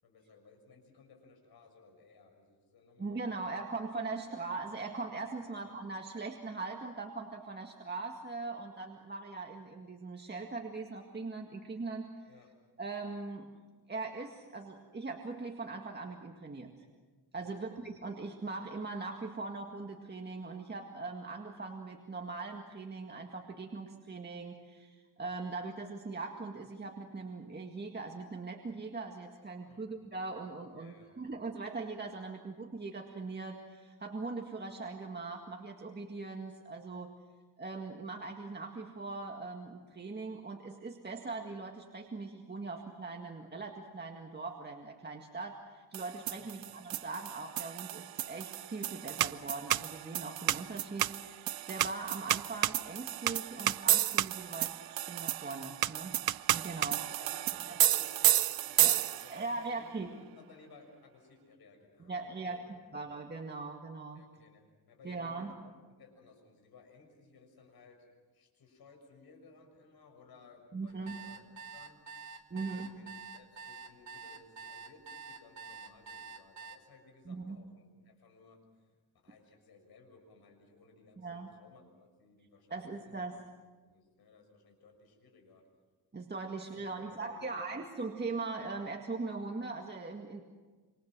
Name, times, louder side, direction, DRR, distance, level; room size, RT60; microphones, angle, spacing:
voice 1, 0.0-3.2 4.2-4.4 5.4-5.6 12.3-12.5 17.4-17.8 29.7-29.9 30.7-31.1 46.3-46.7 56.9-62.7 64.1-68.1 68.3-71.4 71.7-83.2 83.8-85.6 86.5-87.5, left 4 dB, 70° left, 4 dB, 6.7 m, -59 dB
voice 2, 3.0-12.1 12.8-13.5 13.9-16.7 17.3-37.1 37.6-56.2 56.5-57.0 57.7-57.8 58.8-59.0 59.3-60.1 62.1-64.2 65.0-65.5 70.7-71.2 72.5-72.9 77.3-77.6 81.2-81.5 82.7-83.4 86.1-90.4, right 3 dB, 25° right, 2 dB, 2.0 m, -40 dB
sound 1, 45.9-59.5, right 13 dB, 65° right, 0.7 m, -31 dB
sound 2, 70.9-76.8, right 5 dB, 45° right, 2.4 m, -47 dB
27.5 x 26.0 x 6.2 m, 1.3 s
cardioid pair, 110°, 39 cm